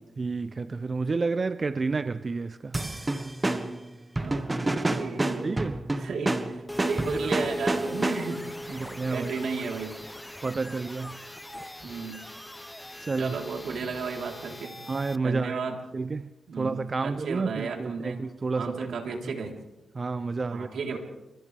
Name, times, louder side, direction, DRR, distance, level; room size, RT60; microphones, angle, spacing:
voice 1, 0.2-2.8 5.4-5.8 8.7-9.3 10.4-11.3 13.0-13.4 14.9-15.6 15.9-16.3 16.6-19.0 19.2-19.5 19.9-20.7, right 4 dB, 40° right, 0.6 m, -30 dB
sound 1, 2.7-8.5, right 2 dB, 20° right, 1.5 m, -29 dB
voice 2, 4.2-5.6 6.0-8.4 8.7-9.9 11.8-12.2 13.2-14.7 15.2-15.8 16.5-16.8 17.0-18.2 18.6-19.6 20.5-21.0, right 5 dB, 75° right, 3.9 m, -34 dB
sound 2, 6.7-15.2, equal, 10° left, 0.7 m, -39 dB
29.5 x 26.0 x 3.5 m
cardioid pair, 80°, 0 cm